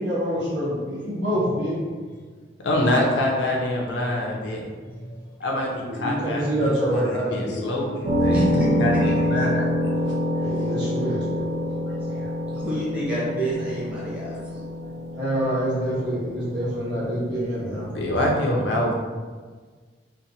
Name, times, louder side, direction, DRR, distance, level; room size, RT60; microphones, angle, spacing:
voice 1, 0.0-1.8 5.0-5.1 5.9-7.6 10.3-11.5 11.8-12.3 15.1-17.9, equal, 75° right, -7 dB, 1.0 m, -26 dB
voice 2, 2.6-4.6 5.4-8.5 8.8-9.9 17.9-18.9, left 1 dB, 80° left, 0 dB, 0.5 m, -25 dB
sound 1, 8.0-18.3, equal, 40° right, 0.5 m, -27 dB
voice 3, 8.3-9.5 10.4-10.5 12.5-14.6, right 1 dB, 10° right, -8 dB, 0.7 m, -28 dB
2.9 x 2.0 x 2.6 m, 1.5 s
head